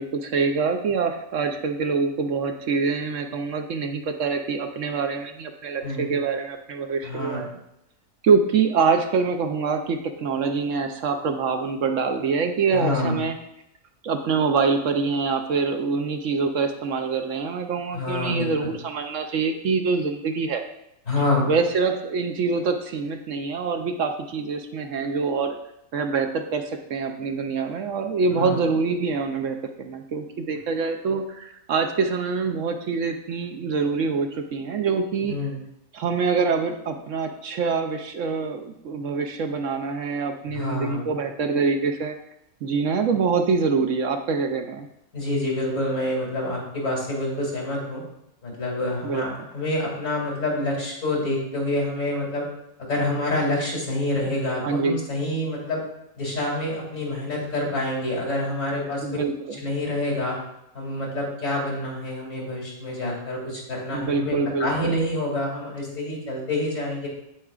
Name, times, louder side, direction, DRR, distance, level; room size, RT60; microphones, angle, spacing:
voice 1, 0.0-7.5 8.2-13.4 14.0-20.6 21.5-25.6 25.9-26.6 26.9-35.4 35.9-42.2 42.6-44.9 49.0-49.2 54.3-54.4 54.6-54.9 59.0-59.6 63.9-64.9, right 5 dB, 70° right, 6 dB, 0.9 m, -25 dB
voice 2, 5.8-6.1 7.0-7.4 12.7-13.2 17.9-18.7 21.1-21.5 28.3-28.5 35.3-35.6 40.5-41.1 45.1-48.0 48.4-52.4 52.9-55.8 56.2-59.0 59.6-60.3 60.7-67.1, left 1 dB, 60° left, -3 dB, 3.0 m, -27 dB
8.5 x 8.1 x 2.4 m, 0.81 s
omnidirectional pair, 1.5 m